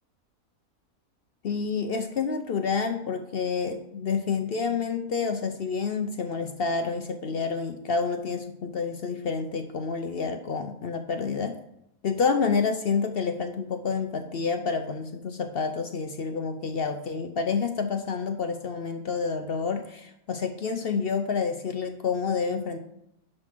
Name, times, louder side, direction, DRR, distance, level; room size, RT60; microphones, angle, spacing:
voice 1, 1.4-11.6 12.0-22.8, left 5 dB, 55° left, 7 dB, 0.7 m, -28 dB
10.5 x 3.8 x 6.0 m, 0.81 s
omnidirectional pair, 1.4 m